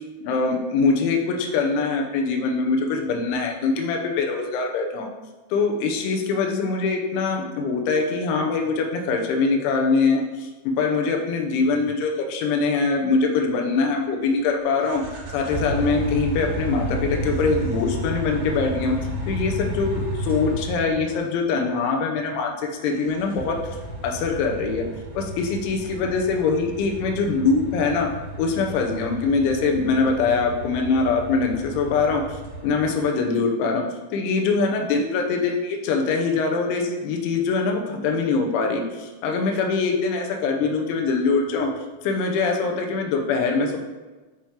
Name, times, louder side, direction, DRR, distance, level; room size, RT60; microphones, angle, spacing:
voice 1, 0.2-5.1 5.5-15.0 15.3-19.0 19.3-23.6 24.0-24.8 25.1-28.1 28.4-33.8 34.1-41.7 42.0-43.8, left 4 dB, 85° left, 2 dB, 3.1 m, -23 dB
sound 1, 14.8-21.2 22.9-33.0, right 1 dB, 55° right, 2.6 m, -32 dB
10.0 x 3.6 x 2.9 m, 1.2 s
omnidirectional pair, 5.4 m